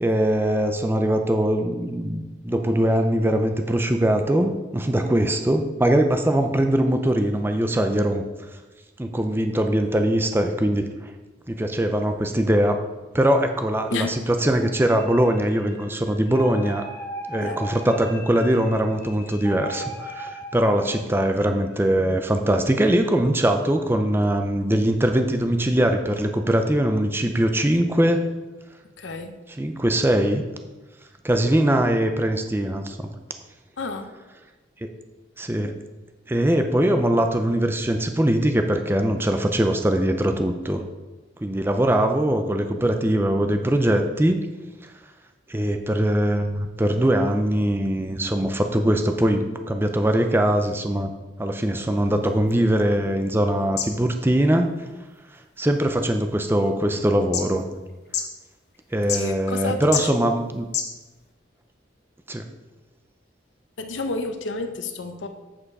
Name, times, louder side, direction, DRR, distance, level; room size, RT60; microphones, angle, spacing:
voice 1, 0.0-8.2 9.0-10.8 11.5-12.8 13.1-14.1 14.4-16.8 17.3-28.2 29.6-30.4 31.2-33.1 35.4-35.7 36.3-40.8 41.4-44.4 45.5-51.1 51.4-54.7 55.6-57.6 58.9-60.7 62.3-62.4, right 1 dB, 10° right, 6 dB, 0.5 m, -21 dB
sound 1, 14.5-21.8, equal, 15° left, 1.6 m, -38 dB
voice 2, 29.0-29.3 33.8-34.1 59.1-60.1 63.8-65.3, left 2 dB, 90° left, 6 dB, 0.8 m, -30 dB
sound 2, 52.1-61.3, left 7 dB, 60° left, 1.0 m, -35 dB
8.6 x 5.4 x 4.7 m, 1.2 s
head